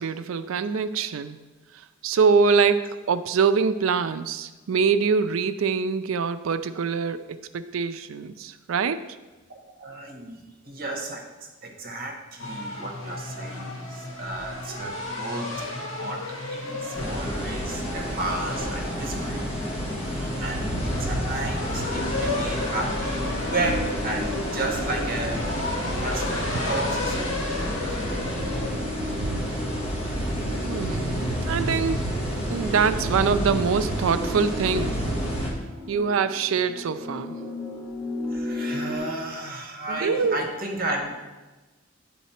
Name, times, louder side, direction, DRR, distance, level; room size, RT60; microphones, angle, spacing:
voice 1, 0.0-1.4 2.0-9.2 30.6-32.1 32.5-35.0 35.9-37.4 39.9-40.4, right 5 dB, 80° right, 12 dB, 0.4 m, -24 dB
voice 2, 9.5-11.3 11.6-15.5 15.9-19.7 20.0-25.4 26.0-27.3 38.3-41.1, right 2 dB, 50° right, 2 dB, 1.1 m, -33 dB
sound 1, 12.4-28.7, left 2 dB, 80° left, 1.9 m, -33 dB
sound 2, 17.0-35.5, equal, 30° left, 1.3 m, -30 dB
sound 3, 21.4-39.0, left 1 dB, 5° right, 1.5 m, -36 dB
9.2 x 3.9 x 4.3 m, 1.2 s
head